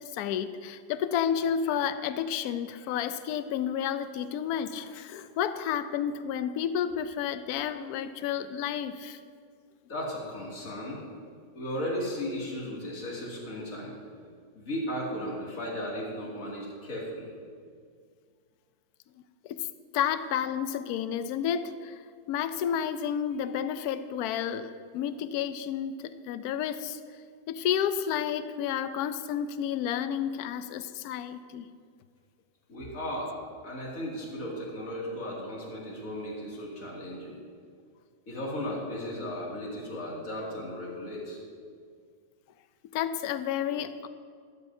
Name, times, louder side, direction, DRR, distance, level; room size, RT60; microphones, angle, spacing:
voice 1, 0.1-9.2 19.4-19.7 19.9-22.0 22.3-27.0 27.5-31.7 42.9-44.1, left 9 dB, 70° left, 11 dB, 1.0 m, -31 dB
voice 2, 9.9-11.0 11.5-14.0 14.5-17.3 32.7-37.4 38.3-41.4, equal, 45° left, -4 dB, 2.8 m, -35 dB
13.5 x 13.0 x 2.7 m, 2.1 s
omnidirectional pair, 1.9 m